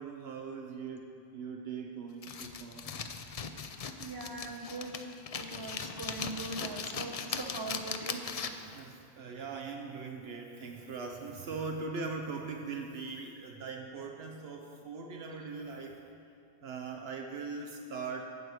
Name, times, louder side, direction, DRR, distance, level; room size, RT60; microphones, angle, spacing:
voice 1, 0.0-2.9 8.6-16.0 16.6-18.2, right 4 dB, 70° right, 2 dB, 1.0 m, -41 dB
sound 1, 2.2-8.7, left 6 dB, 50° left, 0.4 m, -39 dB
voice 2, 4.0-4.9 5.3-8.3, right 3 dB, 25° right, 2 dB, 0.8 m, -41 dB
12.0 x 4.7 x 8.1 m, 2.6 s
omnidirectional pair, 1.1 m